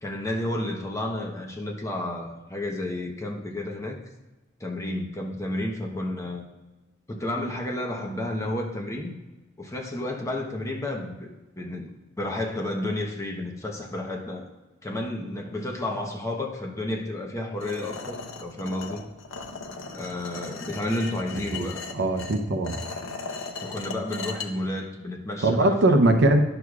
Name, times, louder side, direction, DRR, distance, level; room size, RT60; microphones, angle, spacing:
voice 1, 0.0-4.0 4.6-6.4 7.1-9.1 9.6-11.9 12.2-14.5 14.8-19.0 19.9-21.8 23.6-26.1, left 1 dB, 15° left, 1 dB, 0.9 m, -31 dB
sound 1, 17.6-24.5, left 4 dB, 75° left, 0.8 m, -37 dB
voice 2, 21.6-22.8 25.4-26.4, right 2 dB, 60° right, 7 dB, 0.6 m, -21 dB
10.5 x 6.4 x 2.4 m, 1.1 s
head